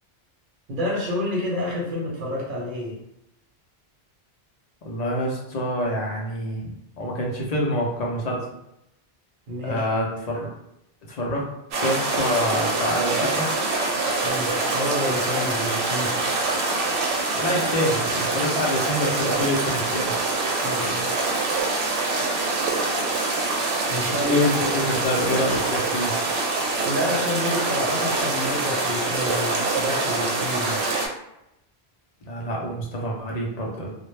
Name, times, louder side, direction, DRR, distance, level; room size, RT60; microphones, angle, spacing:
voice 1, 0.7-3.0 9.5-9.9 14.2-16.1 20.6-21.1 23.8-24.5 26.8-30.9, equal, 55° right, -2 dB, 0.8 m, -29 dB
voice 2, 4.8-6.7 7.0-8.4 9.6-10.5 11.1-11.4 11.8-13.5 17.3-20.1 24.3-26.1 32.2-33.9, left 1 dB, 50° left, -3 dB, 0.5 m, -26 dB
sound 1, 11.7-31.1, right 3 dB, 85° right, 0.8 m, -25 dB
2.1 x 2.0 x 3.0 m, 0.84 s
omnidirectional pair, 1.1 m